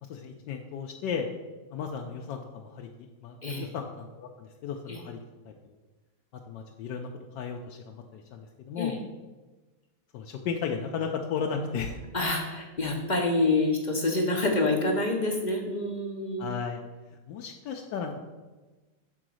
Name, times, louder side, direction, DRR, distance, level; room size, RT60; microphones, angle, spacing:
voice 1, 0.0-1.3 1.7-5.2 5.5-5.7 6.5-7.1 7.3-9.0 10.1-12.0 16.4-16.8 17.3-18.2, left 6 dB, 80° left, 2 dB, 1.2 m, -35 dB
voice 2, 12.1-16.5, left 2 dB, 45° left, 1 dB, 0.5 m, -27 dB
7.1 x 3.8 x 6.2 m, 1.2 s
omnidirectional pair, 1.9 m